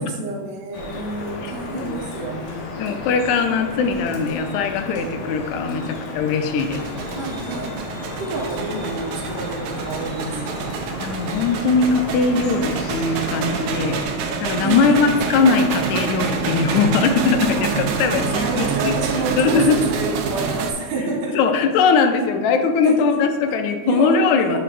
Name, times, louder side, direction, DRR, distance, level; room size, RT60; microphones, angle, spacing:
voice 1, 0.0-2.6 5.8-6.0 7.1-7.8 8.1-10.8 14.6-15.1 17.5-17.7 18.1-21.4 22.8-23.1 23.5-23.6 23.8-24.6, right 3 dB, 65° right, -2 dB, 1.0 m, -29 dB
Drip, 0.7-14.0, left 2 dB, 60° left, 1.6 m, -33 dB
voice 2, 1.4-2.0 2.8-6.9 11.0-14.0 14.4-18.9 19.4-19.8 21.3-24.6, left 4 dB, 80° left, 6 dB, 1.9 m, -20 dB
sound 1, 6.6-20.7, right 5 dB, 90° right, 2.1 m, -27 dB
7.8 x 6.1 x 2.5 m, 1.4 s
omnidirectional pair, 3.5 m